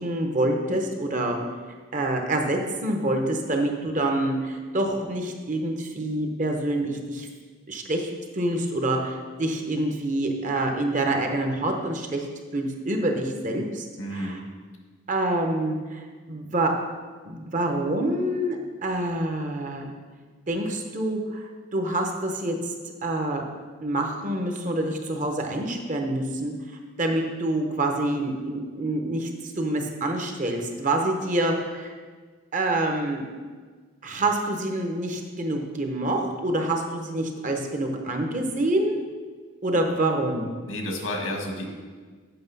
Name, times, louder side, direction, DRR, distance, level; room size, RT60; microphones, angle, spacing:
voice 1, 0.0-1.4 1.9-7.3 7.7-12.3 12.5-13.9 14.1-14.4 15.1-16.7 17.2-19.9 20.5-22.7 23.0-23.4 23.8-26.5 27.0-31.9 32.5-33.2 34.0-39.0 39.6-40.6, right 1 dB, 40° right, 3 dB, 1.0 m, -26 dB
voice 2, 14.0-14.4 40.7-41.7, left 1 dB, 85° left, 2 dB, 1.7 m, -31 dB
7.9 x 6.6 x 5.4 m, 1.5 s
head